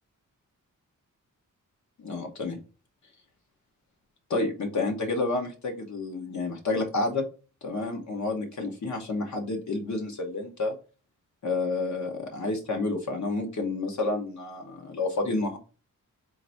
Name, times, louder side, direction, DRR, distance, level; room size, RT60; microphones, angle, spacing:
voice 1, 2.0-2.6 4.3-7.3 7.6-10.7 11.4-15.6, left 3 dB, 60° left, 3 dB, 1.0 m, -30 dB
3.8 x 2.6 x 4.4 m, 0.34 s
wide cardioid pair, 165°, 33 cm